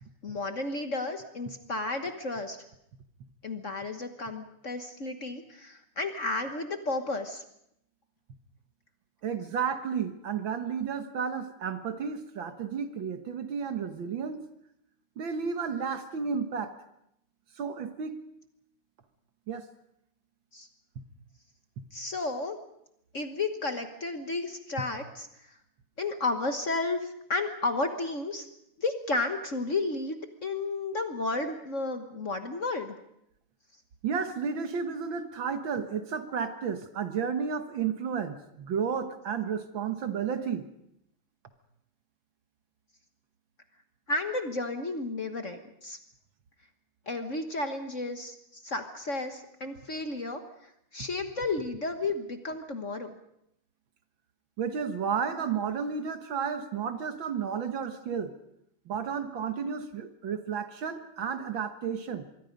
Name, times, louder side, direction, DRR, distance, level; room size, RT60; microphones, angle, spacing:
voice 1, 0.2-2.6 3.4-7.4 20.5-20.7 21.9-22.6 23.1-25.6 26.0-28.5 28.8-32.9 44.1-46.0 47.1-50.4 50.9-53.2, left 3 dB, 40° left, 7 dB, 1.4 m, -32 dB
voice 2, 9.2-14.4 15.2-16.7 17.6-18.2 19.5-19.7 34.0-40.6 54.6-58.3 58.9-62.2, right 6 dB, 65° right, 8 dB, 2.0 m, -32 dB
25.5 x 22.5 x 5.3 m, 0.77 s
omnidirectional pair, 2.4 m